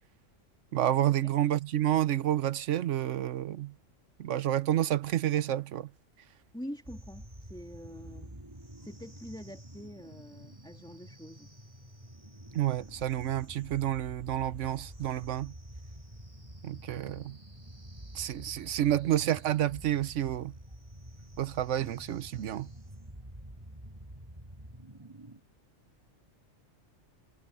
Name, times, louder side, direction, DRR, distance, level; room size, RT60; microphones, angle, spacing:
voice 1, 0.7-3.7 4.2-5.9 12.5-15.5 16.6-17.4 18.1-20.5 21.4-22.7, right 12 dB, 75° right, 1.1 m, -29 dB
voice 2, 6.5-8.3 8.8-11.5, equal, 5° left, 2.7 m, -45 dB
sound 1, 6.9-25.4, right 1 dB, 20° right, 2.4 m, -48 dB
omnidirectional pair, 1.3 m